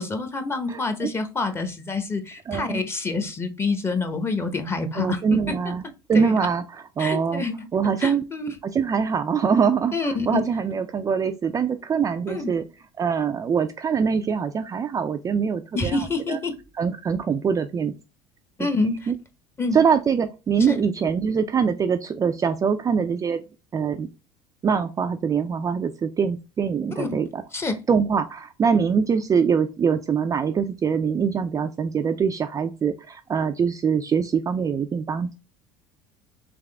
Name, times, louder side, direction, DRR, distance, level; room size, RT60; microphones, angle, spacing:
voice 1, 0.0-5.6 6.1-6.3 7.0-7.7 8.0-8.5 9.9-10.4 12.3-12.5 15.7-16.5 18.6-19.0 19.6-19.8 20.7-20.8 27.0-27.1 27.5-27.8, left 3 dB, 20° left, 7 dB, 0.9 m, -27 dB
voice 2, 0.7-1.1 2.5-2.8 4.9-5.8 6.1-7.4 7.7-8.2 8.7-12.6 13.0-16.4 16.8-17.9 18.6-18.7 19.1-19.2 19.7-23.4 23.7-24.1 24.6-27.4 27.9-35.3, right 6 dB, 25° right, 7 dB, 0.4 m, -23 dB
3.6 x 3.3 x 3.3 m, 0.29 s
supercardioid pair, 90°, 12 cm